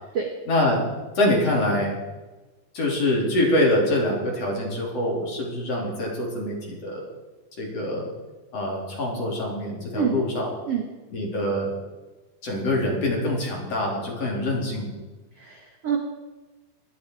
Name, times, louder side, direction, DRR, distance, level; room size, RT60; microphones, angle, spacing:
voice 1, 0.5-0.8 1.1-2.0 2.7-7.1 7.6-8.1 8.5-10.5 11.1-11.7 12.4-15.0, left 1 dB, 35° left, -2 dB, 4.4 m, -25 dB
voice 2, 15.3-16.0, right 7 dB, 65° right, 2 dB, 1.5 m, -26 dB
21.0 x 12.5 x 4.8 m, 1.2 s
omnidirectional pair, 5.1 m